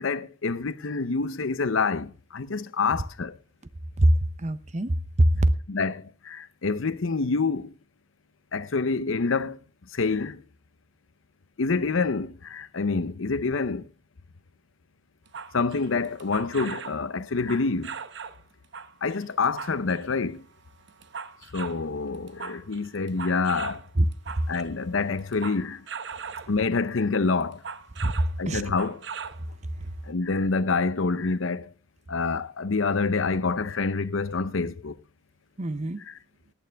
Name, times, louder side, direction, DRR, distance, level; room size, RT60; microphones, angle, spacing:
voice 1, 0.0-3.4 5.7-7.7 8.5-9.6 9.9-10.4 11.6-13.9 15.5-18.0 19.0-20.4 21.5-23.8 24.5-25.8 26.5-27.6 28.4-29.1 30.1-31.7 32.1-35.0 36.1-36.2, left 4 dB, 75° left, 0.7 m, -27 dB
voice 2, 4.4-5.5 24.0-24.1 28.0-28.6 35.6-36.0, right 1 dB, 35° right, 0.7 m, -23 dB
sound 1, 15.3-17.0 17.4-18.4 18.7-20.2 20.7-21.8 22.1-24.7 25.2-26.6 27.4-28.4 28.6-29.4 29.8-29.9, right 6 dB, 60° right, 0.9 m, -39 dB
18.5 x 9.0 x 3.4 m
head